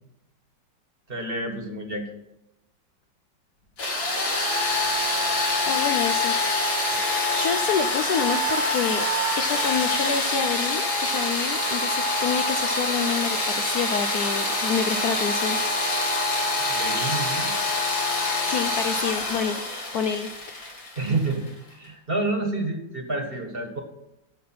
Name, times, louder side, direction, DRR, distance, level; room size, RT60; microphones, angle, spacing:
voice 1, 1.1-2.1 16.6-17.5 21.0-23.8, right 2 dB, 30° right, 4 dB, 1.6 m, -29 dB
sound 1, 3.8-21.5, left 2 dB, 85° left, 3.5 m, -25 dB
voice 2, 5.7-6.9 7.3-9.1 9.4-15.6 18.5-19.6 19.9-20.8, left 6 dB, 70° left, 8 dB, 1.0 m, -28 dB
15.5 x 5.5 x 5.9 m, 0.91 s
omnidirectional pair, 2.1 m